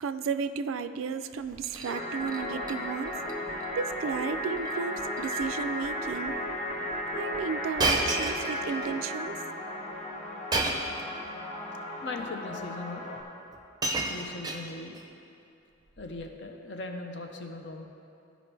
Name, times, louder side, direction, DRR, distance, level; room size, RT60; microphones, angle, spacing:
voice 1, 0.0-3.2 3.8-6.4 7.1-9.5, right 6 dB, 85° right, 11 dB, 0.4 m, -33 dB
Shatter, 1.4-1.9 2.3-2.7 3.1-3.3 3.6-3.7 4.6-4.8 5.1-5.4 6.1-6.2 7.8-8.9 10.5-11.0 12.0-12.1 13.1-13.2 13.5-15.0 16.0-16.2, right 2 dB, 20° right, 0.5 m, -31 dB
sound 1, 1.9-13.2, left 1 dB, 35° left, 1.0 m, -35 dB
voice 2, 12.0-13.0 14.1-15.0 16.0-17.8, left 2 dB, 60° left, 4 dB, 0.7 m, -39 dB
14.0 x 5.1 x 3.3 m, 2.7 s
head